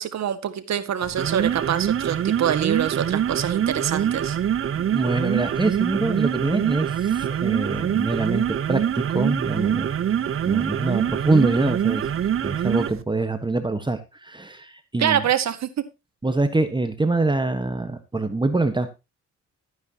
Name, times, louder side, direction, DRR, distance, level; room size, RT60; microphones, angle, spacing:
voice 1, 0.0-4.4 15.0-15.8, right 9 dB, 65° right, 10 dB, 1.9 m, -25 dB
sound 1, 1.0-13.0, right 9 dB, 45° right, 0.8 m, -24 dB
voice 2, 4.7-9.9 10.4-12.1 12.4-15.2 16.2-18.9, right 2 dB, 15° right, 9 dB, 1.4 m, -24 dB
14.0 x 9.5 x 2.9 m, 0.26 s
cardioid pair, 90°, 30 cm